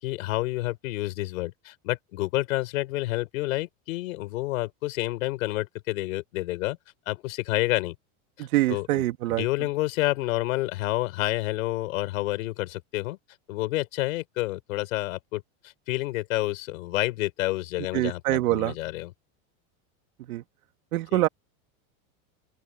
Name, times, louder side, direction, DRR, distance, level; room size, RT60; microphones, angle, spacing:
voice 1, 0.0-6.8 7.1-7.9 8.4-13.2 13.5-19.1 21.1-21.2, left 18 dB, 70° left, 6.6 m, -29 dB
voice 2, 8.4-9.5 17.9-18.7 20.3-20.4 20.9-21.3, right 16 dB, 80° right, 2.3 m, -25 dB
open air
supercardioid pair, 175°, 42 cm